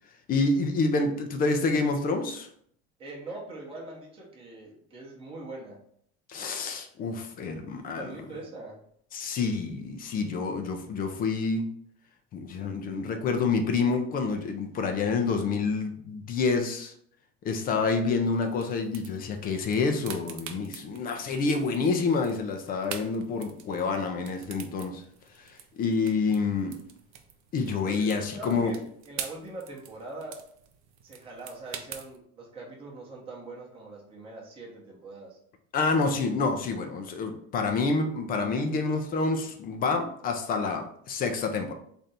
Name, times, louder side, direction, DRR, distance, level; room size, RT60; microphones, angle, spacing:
voice 1, 0.3-2.5 6.3-8.1 9.1-11.7 12.3-16.9 17.4-25.0 25.8-26.8 27.5-28.7 35.7-41.7, left 4 dB, 30° left, 0.4 m, -28 dB
voice 2, 3.0-5.8 7.9-8.8 27.9-30.4 31.0-35.4, right 2 dB, 15° right, 0.8 m, -42 dB
sound 1, 18.3-32.2, right 8 dB, 45° right, 0.5 m, -45 dB
3.3 x 2.6 x 4.1 m
cardioid pair, 145°, 32 cm